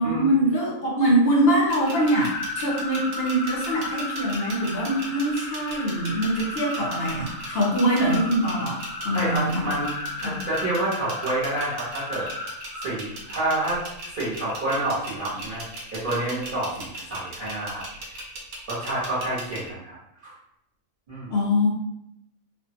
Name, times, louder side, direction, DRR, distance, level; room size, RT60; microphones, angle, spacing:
voice 1, 0.0-8.8 9.0-9.7 10.2-10.3 21.3-21.7, equal, 55° left, -4 dB, 0.7 m, -23 dB
sound 1, 1.7-19.7, right 1 dB, 75° right, 1.1 m, -38 dB
sound 2, 1.8-15.1, left 2 dB, 90° left, 1.1 m, -35 dB
voice 2, 9.1-9.9 10.2-12.2 12.8-13.8 14.2-15.6 15.9-17.8 18.7-19.9 20.2-20.3 21.1-21.3, right 1 dB, 40° right, -11 dB, 1.1 m, -28 dB
2.7 x 2.3 x 2.7 m, 0.79 s
omnidirectional pair, 1.5 m